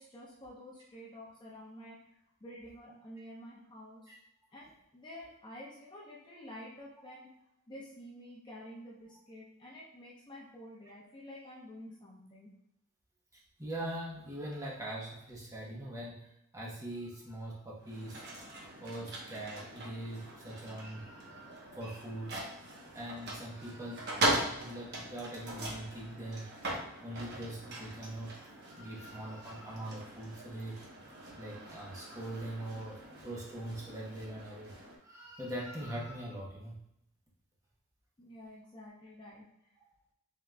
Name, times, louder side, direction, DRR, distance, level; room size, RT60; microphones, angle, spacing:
voice 1, 0.0-2.1 2.4-4.1 4.5-7.3 7.7-12.5 38.2-39.4, equal, 20° left, -5 dB, 0.7 m, -49 dB
voice 2, 13.3-18.2 18.8-22.4 22.9-26.5 27.0-28.4 28.7-30.8 31.4-34.7 35.0-36.8 39.8-39.9, right 1 dB, 15° right, -4 dB, 0.9 m, -42 dB
sound 1, 17.8-35.0, right 1 dB, 50° right, 0.9 m, -40 dB
3.7 x 3.0 x 3.3 m, 0.78 s
head